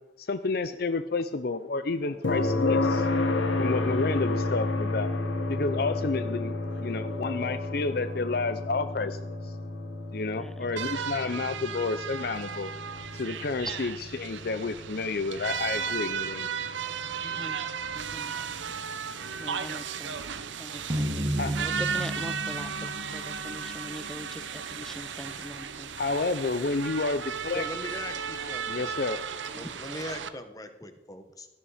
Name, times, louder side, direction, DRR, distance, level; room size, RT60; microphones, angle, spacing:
voice 1, 0.2-3.1 3.6-5.1 5.5-9.5 10.1-12.7 13.2-16.6 21.4-21.5 25.9-27.7 28.7-29.2, left 3 dB, 55° left, 11 dB, 0.5 m, -30 dB
sound 1, 2.2-16.1 18.3-18.4, left 2 dB, 90° left, 1.8 m, -31 dB
voice 2, 10.4-10.7 17.2-17.6 17.9-18.3 19.4-20.2 20.6-26.2 29.6-29.7, equal, ahead, 11 dB, 0.5 m, -42 dB
sound 2, 10.8-30.3, right 7 dB, 80° right, 0.9 m, -35 dB
sound 3, 20.9-25.3, equal, 25° right, 1.3 m, -34 dB
voice 3, 27.5-28.9 29.5-31.5, left 1 dB, 20° left, 8 dB, 1.3 m, -40 dB
16.5 x 12.5 x 5.0 m, 1.0 s
head